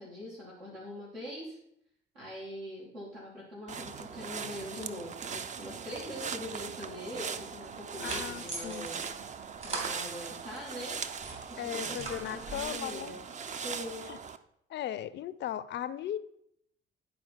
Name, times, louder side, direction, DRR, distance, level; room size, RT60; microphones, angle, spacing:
voice 1, 0.0-1.6 2.1-11.0 11.5-13.2 13.5-14.1, left 1 dB, 80° right, -8 dB, 2.7 m, -43 dB
sound 1, 3.7-14.4, right 6 dB, 25° right, 0.5 m, -40 dB
sound 2, 7.6-10.6 11.0-12.8, right 3 dB, 45° right, 2.2 m, -42 dB
voice 2, 8.0-8.9 11.6-13.1 14.1-14.2 14.7-16.2, left 11 dB, 40° left, 16 dB, 0.5 m, -37 dB
10.5 x 4.4 x 4.6 m, 0.73 s
figure-of-eight pair, 50°, 30 cm